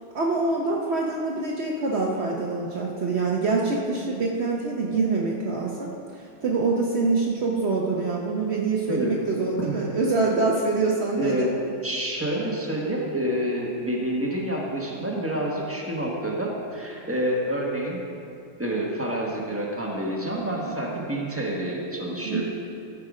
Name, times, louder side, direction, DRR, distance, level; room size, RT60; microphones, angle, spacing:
voice 1, 0.1-11.5 20.4-20.8 22.2-22.4, right 3 dB, 65° right, -2 dB, 0.6 m, -25 dB
voice 2, 11.2-11.6 11.8-18.0 18.6-22.4, right 1 dB, 10° right, -3 dB, 0.9 m, -28 dB
14.0 x 6.7 x 4.9 m, 2.4 s
omnidirectional pair, 2.3 m